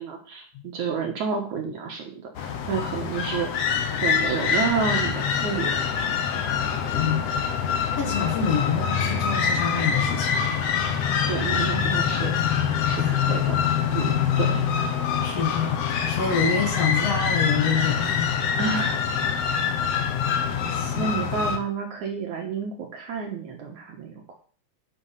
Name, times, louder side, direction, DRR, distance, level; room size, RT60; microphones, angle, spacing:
voice 1, 0.0-3.7 4.0-6.0 11.3-12.4 12.8-14.7 18.6-19.0 20.9-24.4, right 5 dB, 60° right, 1 dB, 2.2 m, -30 dB
sound 1, 2.3-21.6, left 7 dB, 80° left, 1.4 m, -25 dB
voice 2, 6.9-7.4 8.0-10.5 12.9-13.4 15.2-18.3 19.8-19.9 20.7-21.1, left 6 dB, 55° left, 3 dB, 1.8 m, -27 dB
10.0 x 6.1 x 5.7 m, 0.42 s
omnidirectional pair, 4.7 m